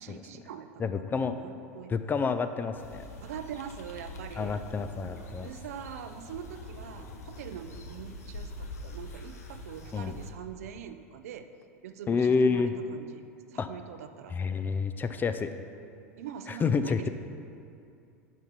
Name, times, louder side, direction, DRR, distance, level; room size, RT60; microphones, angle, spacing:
voice 1, 0.0-0.9 1.2-2.1 3.2-4.6 5.4-11.5 11.8-13.2 13.5-14.4 16.2-17.1, right 8 dB, 70° right, 9 dB, 0.5 m, -43 dB
voice 2, 0.8-1.3 1.9-3.0 4.4-5.5 9.9-10.1 12.1-12.7 13.6-13.7 14.3-15.5 16.5-17.1, left 5 dB, 25° left, 10 dB, 0.5 m, -28 dB
sound 1, 2.7-10.3, left 2 dB, 75° left, 0.9 m, -44 dB
11.0 x 5.8 x 4.1 m, 2.5 s
figure-of-eight pair, 80°, 8 cm